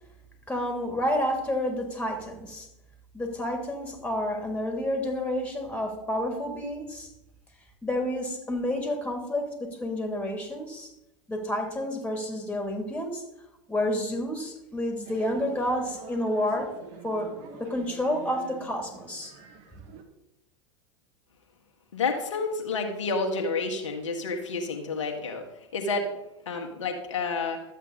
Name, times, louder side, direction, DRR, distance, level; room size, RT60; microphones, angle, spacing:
voice 1, 0.5-2.7 3.1-7.1 7.8-10.9 11.3-13.2 13.7-16.7 17.0-17.3 17.6-19.3, left 1 dB, 5° left, 3 dB, 2.9 m, -30 dB
sound 1, 15.0-20.0, right 6 dB, 50° right, 1.8 m, -46 dB
voice 2, 21.9-26.2 26.4-27.6, left 3 dB, 75° left, 2 dB, 1.6 m, -30 dB
12.5 x 8.2 x 4.1 m, 0.89 s
figure-of-eight pair, 85°, 16 cm